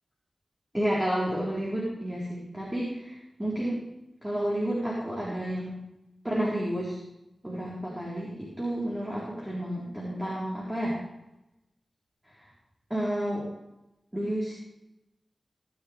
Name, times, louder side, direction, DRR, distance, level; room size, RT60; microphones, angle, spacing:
voice 1, 0.7-3.8 4.2-5.8 6.2-7.0 7.4-11.0 12.9-13.4 14.1-14.5, right 1 dB, 15° right, -7 dB, 4.1 m, -30 dB
18.0 x 10.0 x 3.4 m, 0.91 s
wide cardioid pair, 90°, 0 cm